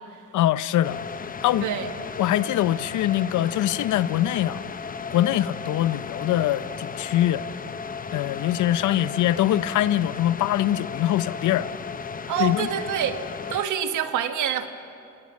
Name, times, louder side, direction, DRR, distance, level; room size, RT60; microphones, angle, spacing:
voice 1, 0.3-1.0 1.4-1.7 2.2-4.6 5.1-7.5 8.1-11.7 12.4-12.7, left 13 dB, 75° left, 0.7 m, -23 dB
sound 1, 0.8-13.7, left 5 dB, 30° left, 0.7 m, -35 dB
voice 2, 1.6-1.9 12.3-13.2 13.5-14.7, right 9 dB, 80° right, 1.5 m, -26 dB
28.0 x 17.5 x 6.4 m
cardioid pair, 90°, 30 cm